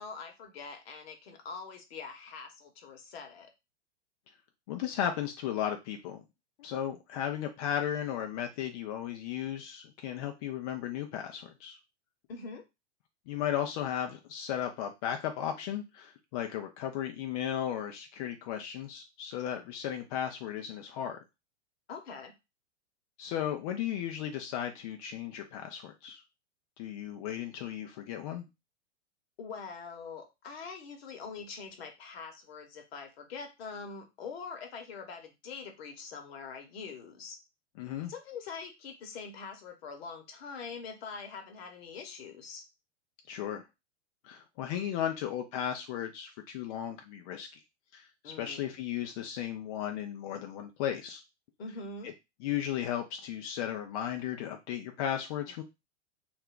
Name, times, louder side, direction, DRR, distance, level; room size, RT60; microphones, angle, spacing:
voice 1, 0.0-3.5 12.3-12.6 21.9-22.3 29.4-37.4 38.1-42.6 48.2-48.7 51.6-52.1, left 5 dB, 55° left, 4 dB, 1.0 m, -44 dB
voice 2, 4.7-6.2 6.6-11.8 13.3-21.2 23.2-26.2 26.8-28.4 37.8-38.1 43.3-43.6 44.2-47.6 47.9-51.2 52.4-55.6, left 10 dB, 35° left, 4 dB, 0.4 m, -35 dB
2.4 x 2.1 x 3.6 m, 0.24 s
figure-of-eight pair, 100°, 35 cm